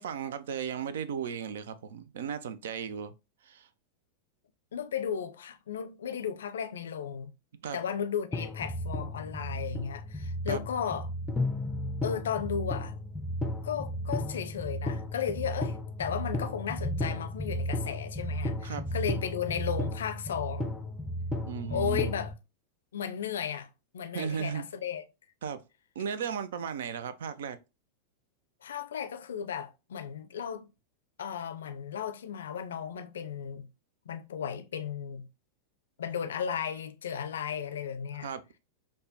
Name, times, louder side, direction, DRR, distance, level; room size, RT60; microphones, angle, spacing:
voice 1, 0.0-3.1 3.4-3.7 7.6-7.8 10.5-10.6 18.6-18.9 21.5-22.1 24.1-24.6 25.4-25.6 26.0-27.6 38.2-38.4, right 7 dB, 60° right, 0.3 m, -35 dB
voice 2, 4.7-7.3 7.7-11.1 12.0-12.9 13.6-20.7 21.7-22.3 22.9-23.7 23.9-25.0 28.6-30.7 31.2-33.7 34.1-35.3 36.0-38.3, left 8 dB, 65° left, 0.4 m, -35 dB
sound 1, 8.3-22.3, left 1 dB, 10° left, 0.5 m, -34 dB
5.0 x 2.1 x 2.7 m
figure-of-eight pair, 90°, 0 cm